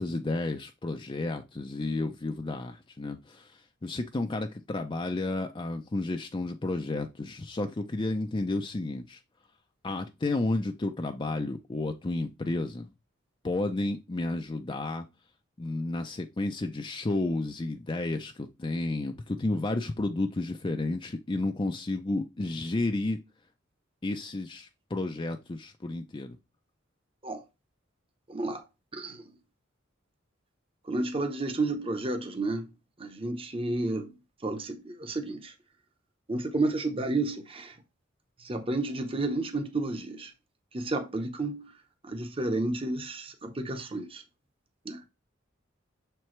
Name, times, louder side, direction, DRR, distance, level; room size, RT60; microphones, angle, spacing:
voice 1, 0.0-9.2 9.8-12.9 13.4-15.1 15.6-23.2 24.0-26.4, left 2 dB, 25° left, 0.5 m, -32 dB
voice 2, 28.3-28.6 28.9-29.2 30.9-32.7 33.0-34.1 34.4-35.5 36.3-37.7 38.4-40.3 40.7-41.7 42.0-44.2 44.8-45.0, right 2 dB, 30° right, 0.9 m, -31 dB
6.8 x 4.5 x 3.2 m
head